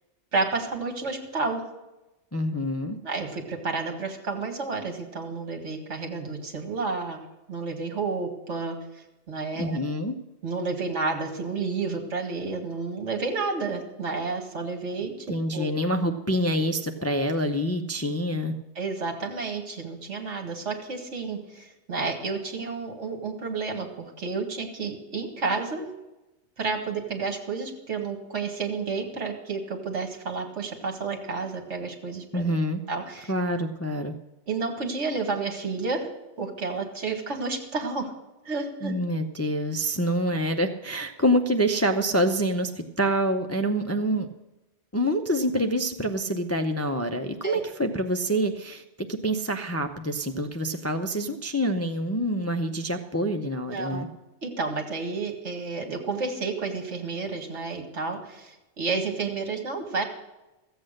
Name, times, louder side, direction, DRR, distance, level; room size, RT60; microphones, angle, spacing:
voice 1, 0.3-1.6 3.0-7.2 7.5-9.8 10.4-15.3 15.5-15.7 18.8-25.8 26.6-32.4 32.9-33.3 34.5-36.1 36.4-38.1 38.4-38.9 47.4-47.6 53.7-54.1 54.4-60.0, right 4 dB, 75° right, 3 dB, 2.1 m, -31 dB
voice 2, 2.3-3.0 9.6-10.1 15.3-18.5 32.3-32.8 33.3-34.1 38.8-44.3 44.9-54.1, equal, 20° left, 6 dB, 0.5 m, -26 dB
14.5 x 8.0 x 6.5 m, 0.99 s
omnidirectional pair, 1.2 m